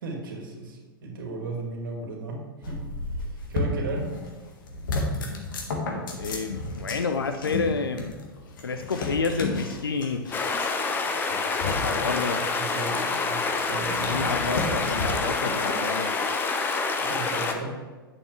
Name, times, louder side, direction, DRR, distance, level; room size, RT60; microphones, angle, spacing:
voice 1, 0.0-2.8 3.5-4.1 11.9-12.2 12.5-14.3 17.0-17.7, right 3 dB, 65° right, 0 dB, 2.1 m, -35 dB
sound 1, 2.6-4.3 4.6-15.8, left 2 dB, 60° left, 1.6 m, -33 dB
voice 2, 6.2-8.2 8.6-10.3 11.6-12.4 14.1-16.1, left 4 dB, 80° left, 7 dB, 0.5 m, -29 dB
sound 2, 10.3-17.5, left 4 dB, 15° left, 0.8 m, -27 dB
9.0 x 7.2 x 3.3 m, 1.3 s
figure-of-eight pair, 100°, 12 cm